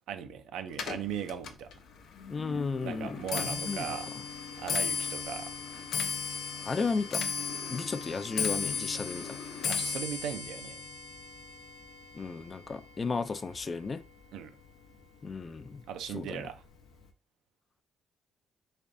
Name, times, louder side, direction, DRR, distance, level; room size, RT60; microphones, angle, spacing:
voice 1, 0.1-1.7 2.5-4.1 4.6-5.5 9.7-10.8 14.3-14.5 15.9-16.6, right 8 dB, 85° right, 0.4 m, -38 dB
Clock, 0.7-14.1 14.4-14.9 15.7-15.8 16.1-16.5 16.7-16.8, left 6 dB, 80° left, 0.6 m, -36 dB
voice 2, 2.3-4.0 6.7-7.2 7.7-9.4 12.1-14.0 15.2-16.4, left 4 dB, 35° left, 0.3 m, -34 dB
3.3 x 3.3 x 2.6 m
cardioid pair, 90°, 0 cm